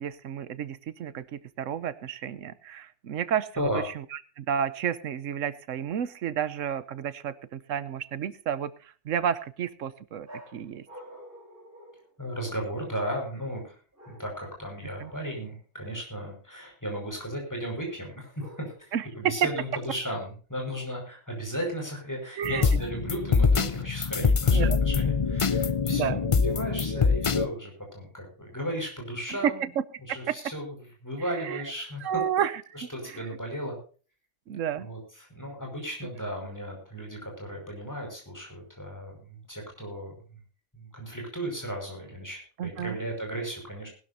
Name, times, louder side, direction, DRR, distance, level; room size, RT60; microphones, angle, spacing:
voice 1, 0.0-3.7 4.4-10.3 10.5-10.8 15.0-15.1 18.9-19.4 22.4-22.7 24.5-24.8 25.9-26.2 29.4-29.7 30.1-30.4 31.4-31.6 32.0-32.5 32.8-33.2 34.5-34.9 42.6-43.0, right 9 dB, 90° right, 15 dB, 1.2 m, -31 dB
sound 1, 10.2-12.8 13.9-14.6 14.9-15.4 18.4-19.0 22.6-23.3, equal, 45° right, 5.8 m, -49 dB
voice 2, 12.2-13.8 14.1-29.7 30.1-30.8 31.0-32.2 32.7-33.8 34.8-40.4 40.7-43.9, equal, 15° left, 1 dB, 5.6 m, -35 dB
sound 2, 22.4-27.5, left 5 dB, 35° left, 0.5 m, -24 dB
20.0 x 12.5 x 2.7 m, 0.39 s
omnidirectional pair, 1.3 m